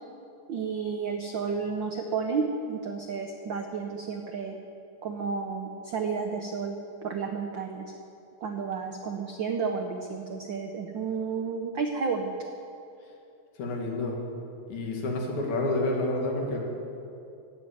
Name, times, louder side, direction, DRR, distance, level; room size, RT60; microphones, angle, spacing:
voice 1, 0.5-4.6 5.0-6.8 7.0-7.9 8.4-12.3, right 5 dB, 90° right, 4 dB, 1.0 m, -31 dB
voice 2, 13.6-14.2 14.7-16.6, left 2 dB, 85° left, 0 dB, 3.3 m, -29 dB
15.0 x 7.3 x 9.2 m, 2.7 s
omnidirectional pair, 3.3 m